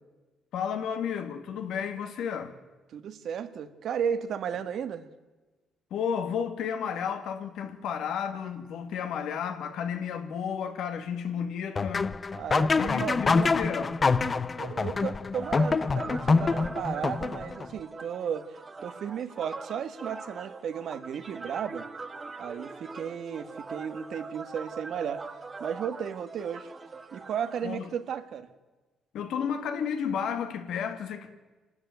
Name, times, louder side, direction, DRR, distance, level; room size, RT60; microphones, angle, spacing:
voice 1, 0.5-2.5 5.9-12.1 12.8-13.9 27.6-27.9 29.1-31.3, left 7 dB, 80° left, 2.0 m, -32 dB
voice 2, 2.9-5.1 11.3-11.4 12.3-13.6 14.6-21.9 22.4-25.2 25.6-26.7 27.1-28.5, right 8 dB, 70° right, 1.5 m, -34 dB
sound 1, 11.8-17.7, left 4 dB, 35° left, 0.8 m, -26 dB
sound 2, 15.4-27.8, right 4 dB, 30° right, 1.7 m, -42 dB
26.5 x 13.0 x 9.2 m
cardioid pair, 90°, 0 cm